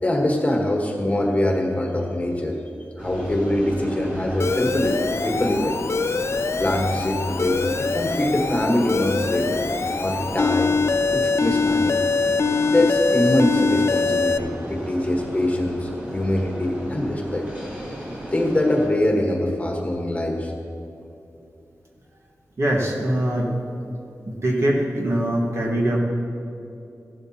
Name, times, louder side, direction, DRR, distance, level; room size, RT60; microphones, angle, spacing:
voice 1, 0.0-2.6 3.0-5.8 6.6-9.6 10.0-10.8 11.1-12.0 12.7-17.5 18.3-20.5, left 1 dB, 25° left, 0 dB, 1.4 m, -23 dB
sound 1, 3.0-18.9, equal, 25° right, 3.1 m, -34 dB
Alarm, 4.4-14.4, left 4 dB, 50° left, 0.4 m, -23 dB
voice 2, 22.6-23.5 24.3-26.0, right 1 dB, 55° right, -1 dB, 1.6 m, -22 dB
15.5 x 11.5 x 2.9 m, 2.7 s
wide cardioid pair, 120°, 6 cm